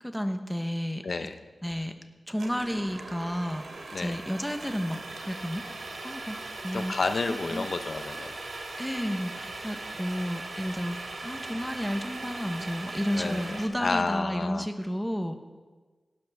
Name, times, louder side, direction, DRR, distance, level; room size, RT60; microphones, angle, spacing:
voice 1, 0.0-1.0 1.6-1.9 2.3-6.4 6.6-6.9 7.3-7.7 8.8-11.0 11.2-15.4, equal, 5° left, 7 dB, 0.9 m, -32 dB
voice 2, 1.0-1.4 3.9-4.2 6.7-8.4 13.1-14.7, left 3 dB, 60° left, 8 dB, 0.7 m, -30 dB
sound 1, 2.4-13.7, right 2 dB, 90° right, 1.6 m, -39 dB
17.0 x 12.5 x 3.5 m, 1.4 s
wide cardioid pair, 85°, 0 cm